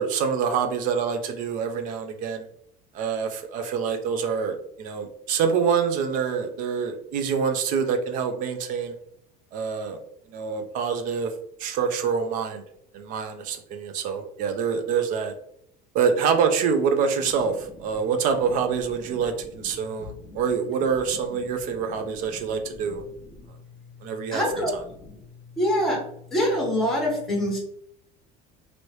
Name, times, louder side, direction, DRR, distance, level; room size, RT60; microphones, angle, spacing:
voice 1, 0.0-2.4 2.9-8.9 9.5-10.0 10.3-11.3 11.6-12.6 12.9-15.3 15.9-23.0 24.0-24.6, right 6 dB, 45° right, 7 dB, 0.4 m, -26 dB
voice 2, 24.3-25.1 25.6-26.0 26.3-27.6, equal, ahead, -1 dB, 0.8 m, -24 dB
3.0 x 2.6 x 3.1 m, 0.69 s
cardioid pair, 165°, 18 cm